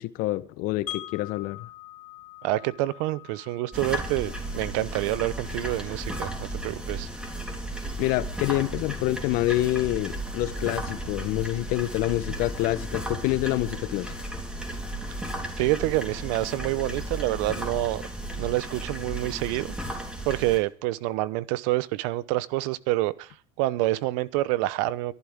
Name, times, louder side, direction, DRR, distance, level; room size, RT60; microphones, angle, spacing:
voice 1, 0.0-1.7 8.0-14.1, left 17 dB, 60° left, 0.9 m, -27 dB
Wind chime, 0.9-6.8, left 15 dB, 85° left, 1.8 m, -45 dB
voice 2, 2.4-7.1 15.6-18.0 18.4-19.7 20.2-25.1, right 17 dB, 65° right, 0.8 m, -27 dB
sound 1, 3.7-20.6, right 1 dB, 5° right, 3.4 m, -34 dB
22.5 x 11.0 x 3.6 m
supercardioid pair, 100°, 17 cm